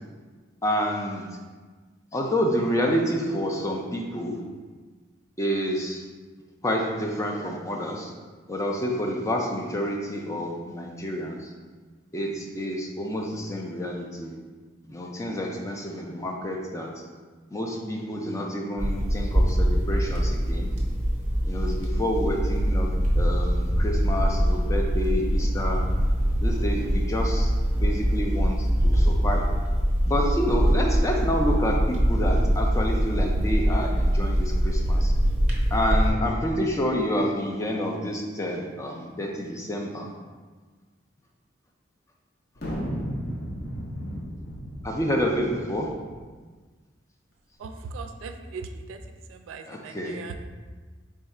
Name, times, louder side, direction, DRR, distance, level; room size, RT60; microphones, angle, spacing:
voice 1, 0.6-1.3 2.1-4.4 5.4-6.0 6.6-8.1 8.5-11.5 12.1-14.3 14.9-16.9 17.5-20.7 21.5-22.9 23.2-25.8 26.4-29.4 30.1-35.1 35.7-40.1 44.8-45.9 49.7-50.2, equal, 15° left, 0 dB, 0.3 m, -28 dB
sound 1, 18.8-36.1, equal, 35° right, 0.6 m, -23 dB
sound 2, 42.6-46.2, equal, 50° left, 0.7 m, -34 dB
voice 2, 47.6-49.0 49.3-50.4, right 4 dB, 85° right, 7 dB, 0.3 m, -39 dB
3.5 x 2.4 x 4.2 m, 1.4 s
head